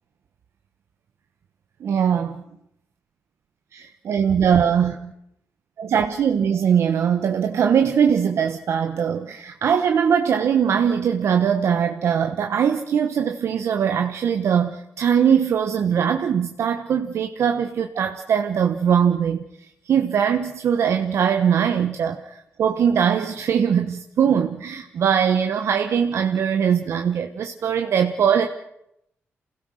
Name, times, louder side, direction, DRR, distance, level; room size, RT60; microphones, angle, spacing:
voice 1, 1.8-2.4 3.7-5.1 5.8-19.4 19.9-28.5, right 8 dB, 70° right, 6 dB, 1.1 m, -21 dB
28.0 x 17.0 x 6.4 m, 0.79 s
wide cardioid pair, 120°, 5 cm